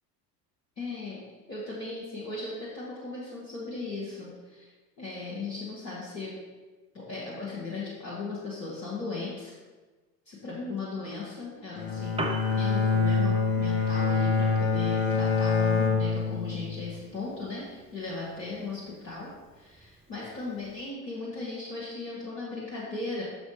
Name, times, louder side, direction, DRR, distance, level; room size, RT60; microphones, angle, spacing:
voice 1, 0.8-1.2 1.5-4.7 5.0-6.3 6.9-9.5 10.3-12.3 12.6-19.3 19.5-23.2, left 3 dB, 75° left, -6 dB, 1.5 m, -37 dB
Bowed string instrument, 11.8-17.0, left 4 dB, 45° left, 1.3 m, -26 dB
Piano, 11.9-20.9, right 2 dB, 10° right, 0.8 m, -44 dB
6.2 x 5.0 x 5.3 m, 1.3 s
figure-of-eight pair, 65°, 50 cm